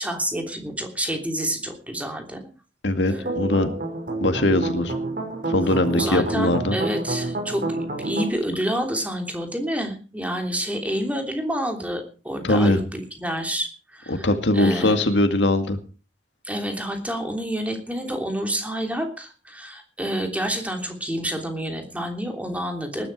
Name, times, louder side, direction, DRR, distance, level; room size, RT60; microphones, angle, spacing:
voice 1, 0.0-2.4 3.1-3.2 5.6-14.3 14.5-15.2 16.4-23.1, equal, 10° right, 4 dB, 3.2 m, -28 dB
voice 2, 2.8-3.7 4.2-4.9 5.5-6.8 12.4-12.8 14.1-15.8, left 1 dB, 90° left, 8 dB, 2.1 m, -21 dB
sound 1, 3.0-8.3, right 2 dB, 50° right, 5.8 m, -29 dB
19.5 x 11.5 x 4.8 m, 0.35 s
head